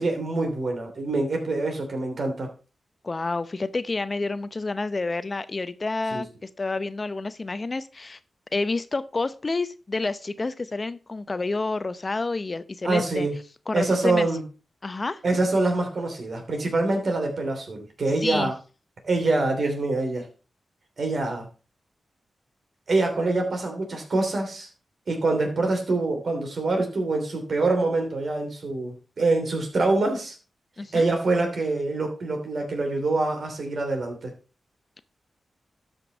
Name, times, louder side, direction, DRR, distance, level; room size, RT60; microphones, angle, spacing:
voice 1, 0.0-2.5 6.1-6.2 12.8-13.3 13.7-14.4 15.2-18.5 19.0-20.3 21.0-21.5 22.9-24.7 25.1-30.4 30.9-34.3, right 2 dB, 65° right, 3 dB, 2.9 m, -25 dB
voice 2, 3.0-8.2 8.5-13.3 13.7-14.3 14.8-15.2 18.2-18.5 30.8-31.1, left 3 dB, 40° left, 14 dB, 0.7 m, -29 dB
12.5 x 5.3 x 3.9 m, 0.34 s
cardioid pair, 45°, 0 cm